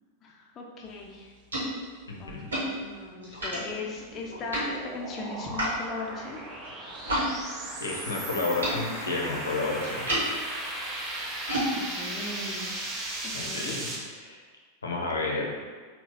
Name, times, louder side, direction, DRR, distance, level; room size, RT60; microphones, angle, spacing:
voice 1, 0.2-1.3 2.2-6.4 11.7-12.7 13.2-13.7, left 3 dB, 30° left, -1 dB, 0.6 m, -38 dB
sound 1, 0.9-7.3 7.6-13.5, right 1 dB, 70° right, 1.3 m, -35 dB
voice 2, 2.1-2.5 7.8-10.1 13.3-13.9 14.2-14.4 14.8-15.6, left 3 dB, 75° left, -1 dB, 0.7 m, -31 dB
sound 2, 3.7-14.0, right 1 dB, 20° right, 0.7 m, -37 dB
3.8 x 2.3 x 4.1 m, 1.5 s
figure-of-eight pair, 90°, 0 cm